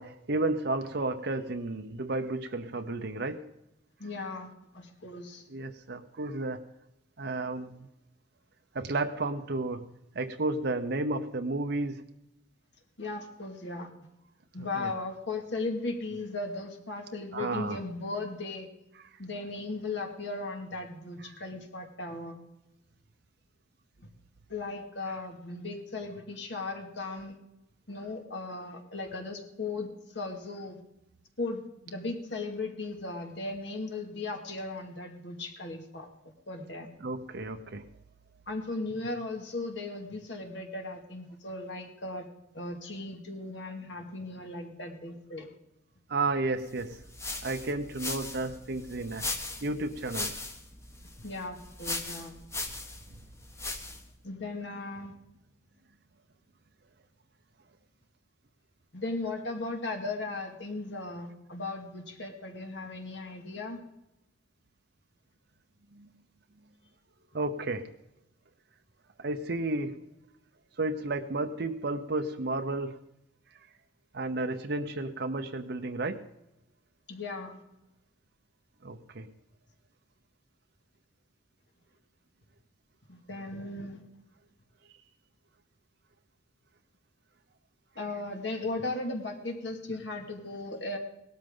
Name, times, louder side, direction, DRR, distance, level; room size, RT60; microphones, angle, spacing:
voice 1, 0.0-3.5 5.5-6.6 7.2-7.9 8.7-9.9 10.1-12.0 14.6-14.9 17.3-17.8 37.0-37.8 46.1-47.0 47.4-49.3 49.6-50.4 66.0-66.1 67.3-67.9 69.2-70.0 70.8-73.0 74.1-76.2 78.8-79.3, right 2 dB, 60° right, 6 dB, 0.7 m, -32 dB
voice 2, 4.0-5.4 13.0-13.9 14.5-18.7 19.2-22.4 24.5-27.4 27.9-30.8 31.4-36.9 38.5-42.3 42.5-45.5 51.2-52.4 54.2-55.1 58.9-63.8 77.1-77.6 83.1-84.0 88.0-91.0, left 2 dB, 70° left, 3 dB, 2.2 m, -37 dB
sound 1, 46.8-54.1, left 2 dB, 15° left, 1.1 m, -39 dB
18.0 x 13.0 x 3.8 m, 0.88 s
head